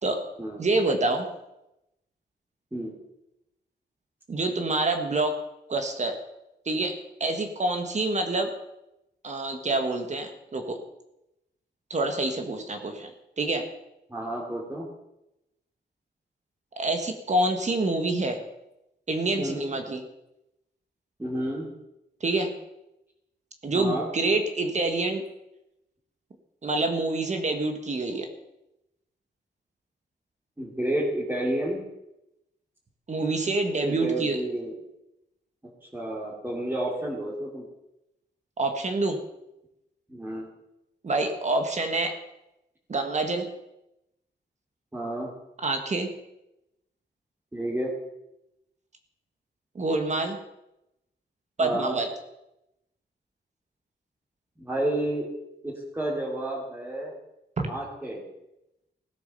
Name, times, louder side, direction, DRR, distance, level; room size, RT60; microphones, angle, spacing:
voice 1, 0.6-1.3 4.3-5.4 5.7-6.2 6.6-8.5 9.2-10.8 11.9-13.1 13.4-13.7 16.8-18.4 19.1-20.0 22.2-22.5 23.6-25.2 26.6-28.3 33.1-34.4 38.6-39.2 41.0-42.2 42.9-43.5 45.6-46.1 49.7-50.4 51.6-52.1 57.6-57.7, right 2 dB, 40° right, 5 dB, 1.6 m, -27 dB
voice 2, 14.1-14.9 19.4-19.6 21.2-21.7 23.7-24.1 30.6-31.8 33.8-34.8 35.9-37.6 40.1-40.5 44.9-45.3 47.5-47.9 51.6-52.0 54.6-55.3 55.6-57.1 57.7-58.2, right 1 dB, 10° right, -7 dB, 2.8 m, -30 dB
16.5 x 9.4 x 6.8 m, 0.89 s
wide cardioid pair, 145°, 18 cm